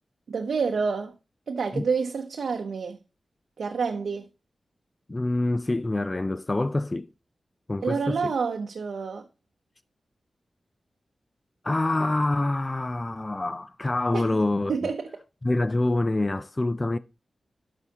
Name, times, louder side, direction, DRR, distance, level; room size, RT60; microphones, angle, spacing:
voice 1, 0.3-1.1 1.5-3.0 3.6-4.3 7.8-9.3 14.1-14.2 14.7-15.1, right 5 dB, 80° right, 0.8 m, -28 dB
voice 2, 5.1-7.1 7.7-8.3 11.6-14.7 15.4-17.0, left 2 dB, 20° left, 0.3 m, -26 dB
13.0 x 5.5 x 2.9 m
wide cardioid pair, 130°, 0 cm